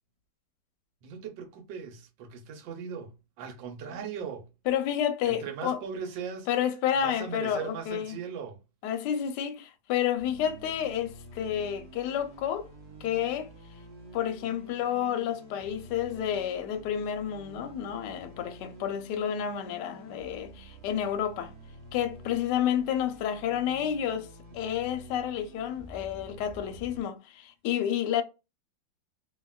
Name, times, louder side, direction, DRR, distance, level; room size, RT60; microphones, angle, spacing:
voice 1, 1.0-4.5 5.3-6.5 7.0-8.6, right 6 dB, 80° right, 1.4 m, -39 dB
voice 2, 4.7-5.8 6.5-8.2 8.8-12.7 13.0-13.5 14.1-21.5 21.9-28.2, left 9 dB, 75° left, 1.1 m, -30 dB
sound 1, 10.2-27.0, right 1 dB, 30° right, 0.7 m, -49 dB
2.8 x 2.6 x 2.3 m
omnidirectional pair, 2.0 m